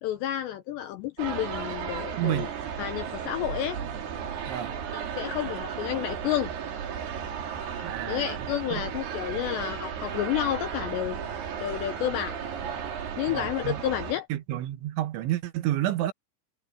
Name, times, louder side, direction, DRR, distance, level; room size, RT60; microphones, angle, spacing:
voice 1, 0.0-2.5 2.8-3.8 4.9-6.5 7.8-11.2 11.6-12.5 13.2-14.3, left 12 dB, 80° left, 2.6 m, -30 dB
sound 1, 1.2-14.1, right 7 dB, 55° right, 4.3 m, -34 dB
voice 2, 2.2-2.5 4.5-4.7 7.8-8.4 8.7-8.8 13.3-13.8 14.3-16.1, right 13 dB, 75° right, 3.3 m, -30 dB
omnidirectional pair, 5.9 m